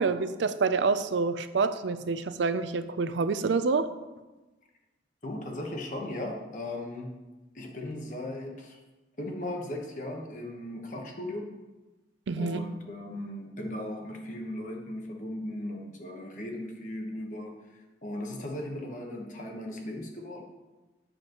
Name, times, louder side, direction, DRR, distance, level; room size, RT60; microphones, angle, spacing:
voice 1, 0.0-3.9 12.3-12.6, right 4 dB, 70° right, 12 dB, 0.4 m, -27 dB
voice 2, 5.2-7.2 7.5-8.8 9.2-11.5 12.4-20.5, left 1 dB, 40° left, 1 dB, 1.1 m, -37 dB
8.7 x 7.7 x 3.0 m, 1.1 s
head